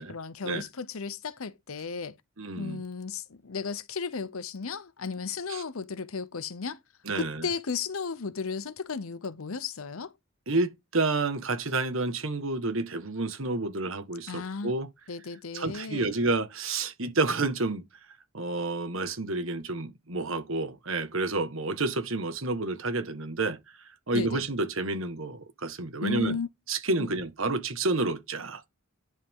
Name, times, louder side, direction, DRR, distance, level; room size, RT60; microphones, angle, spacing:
voice 1, 0.0-2.2 2.6-6.8 7.2-10.1 14.3-14.7 15.1-16.1 24.1-24.4 26.0-26.5 27.0-27.1, left 5 dB, 80° left, 0.8 m, -34 dB
voice 2, 2.4-2.8 5.5-5.6 7.0-7.5 10.5-14.9 15.5-17.8 18.3-23.6 24.1-26.4 26.7-28.6, right 3 dB, 70° right, 1.7 m, -29 dB
10.0 x 5.4 x 3.7 m
head